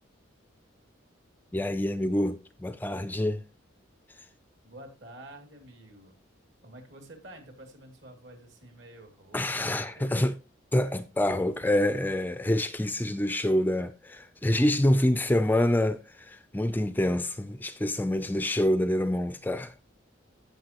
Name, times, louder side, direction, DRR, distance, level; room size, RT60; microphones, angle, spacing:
voice 1, 1.5-3.5 9.3-10.3 10.7-19.7, left 1 dB, 10° left, 0.4 m, -26 dB
voice 2, 4.6-6.2 6.6-9.7 10.0-10.3, right 1 dB, 60° right, 2.8 m, -49 dB
15.5 x 6.2 x 3.0 m
head